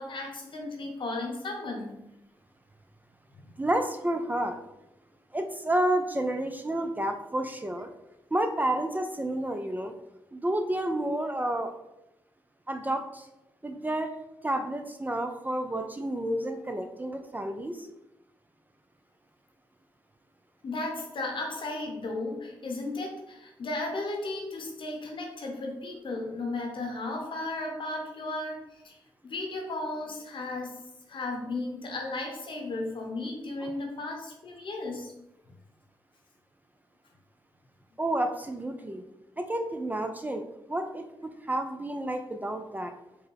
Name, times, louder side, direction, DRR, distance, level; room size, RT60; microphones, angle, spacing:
voice 1, 0.0-1.9 20.6-29.0 29.2-30.8 31.1-35.1, left 2 dB, 60° left, 2 dB, 0.9 m, -35 dB
voice 2, 3.6-4.6 5.3-7.9 8.3-9.9 10.3-11.7 12.7-13.3 13.6-14.2 14.4-17.9 33.6-33.7 38.0-39.0 39.4-40.4 40.7-42.9, right 1 dB, 15° right, 5 dB, 0.4 m, -30 dB
4.3 x 2.1 x 3.3 m, 0.91 s
supercardioid pair, 40°, 10 cm